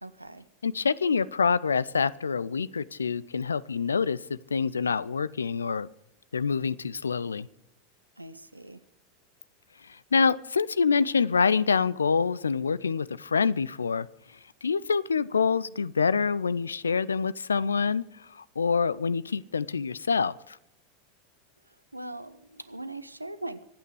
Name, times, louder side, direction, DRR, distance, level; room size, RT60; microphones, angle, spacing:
voice 1, 0.0-0.5 8.2-8.8 21.6-23.6, right 2 dB, 90° right, 13 dB, 0.9 m, -41 dB
voice 2, 0.6-5.9 6.3-7.5 9.9-14.1 14.6-18.0 18.3-20.6, left 5 dB, 75° left, 21 dB, 0.5 m, -26 dB
25.5 x 8.9 x 4.8 m, 0.83 s
figure-of-eight pair, 85°, 0 cm